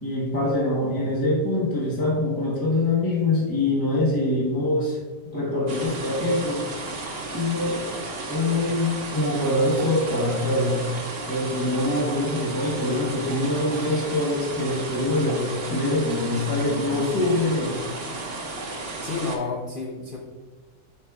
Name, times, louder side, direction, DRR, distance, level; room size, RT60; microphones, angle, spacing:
voice 1, 0.0-5.0 5.3-6.7 7.3-7.9 8.3-11.0 11.3-17.9, left 2 dB, 20° left, -5 dB, 0.8 m, -24 dB
sound 1, 5.7-19.4, right 2 dB, 50° right, 1.1 m, -34 dB
voice 2, 19.0-20.2, left 4 dB, 50° left, -1 dB, 0.7 m, -30 dB
8.6 x 5.0 x 2.3 m, 1.3 s
omnidirectional pair, 1.4 m